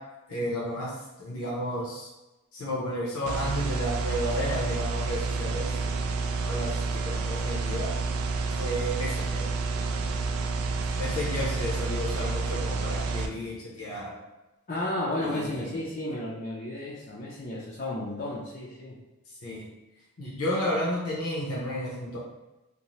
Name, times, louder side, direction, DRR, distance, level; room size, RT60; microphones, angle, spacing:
voice 1, 0.3-0.9 1.2-2.1 2.5-5.7 6.5-7.9 8.6-9.5 10.9-14.1 15.2-15.7 19.4-19.7 20.2-22.2, equal, 80° left, -6 dB, 0.8 m, -32 dB
sound 1, 3.3-13.3, right 3 dB, 75° right, 0.3 m, -29 dB
voice 2, 14.7-19.0, left 1 dB, 35° left, -7 dB, 0.4 m, -33 dB
2.7 x 2.1 x 3.0 m, 1.0 s
head